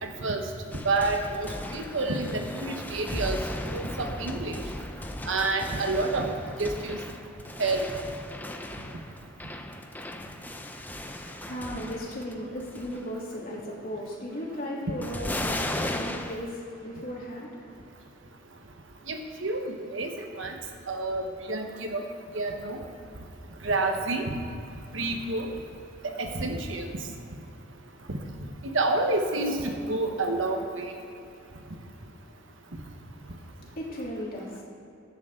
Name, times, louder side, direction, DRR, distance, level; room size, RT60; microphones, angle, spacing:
voice 1, 0.0-0.4 0.8-3.4 3.7-4.6 5.3-6.3 6.6-7.0 7.6-7.9 19.1-20.6 20.9-22.0 22.3-22.8 23.6-24.3 24.9-25.5 26.2-26.9 28.7-31.0, right 2 dB, 70° right, 4 dB, 1.2 m, -29 dB
sound 1, 0.7-12.3 12.6-13.1 15.0-16.4, left 1 dB, 10° left, 0.6 m, -36 dB
voice 2, 11.1-17.8 33.2-34.6, equal, 45° left, -5 dB, 3.1 m, -37 dB
15.5 x 11.0 x 3.8 m, 2.8 s
head